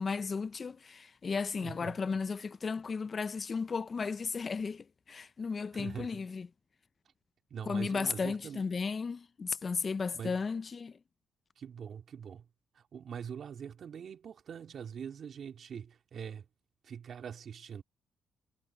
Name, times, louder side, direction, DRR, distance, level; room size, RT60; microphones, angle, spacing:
voice 1, 0.0-6.5 7.6-11.0, left 5 dB, 40° left, 0.6 m, -34 dB
voice 2, 1.6-2.0 5.7-6.2 7.5-8.6 10.1-10.4 11.6-12.5 12.7-16.4 16.8-17.8, right 7 dB, 55° right, 3.1 m, -43 dB
cardioid pair, 90°, 0 cm